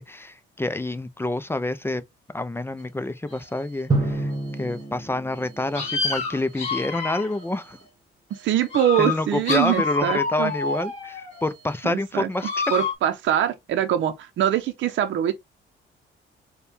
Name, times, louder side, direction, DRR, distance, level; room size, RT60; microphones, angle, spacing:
voice 1, 0.0-2.0 2.3-4.3 4.6-7.8 9.0-12.6, left 2 dB, 10° left, 0.5 m, -28 dB
sound 1, 3.3-3.4 4.3-4.4 5.3-5.4 5.7-7.5 8.3-8.4 8.7-11.5 12.3-12.9, left 4 dB, 35° left, 1.8 m, -28 dB
Drum, 3.9-6.5, right 2 dB, 20° right, 1.6 m, -29 dB
voice 2, 8.3-10.5 11.8-12.3 12.7-15.3, right 11 dB, 70° right, 0.6 m, -23 dB
4.3 x 2.3 x 3.4 m
cardioid pair, 90°, 20 cm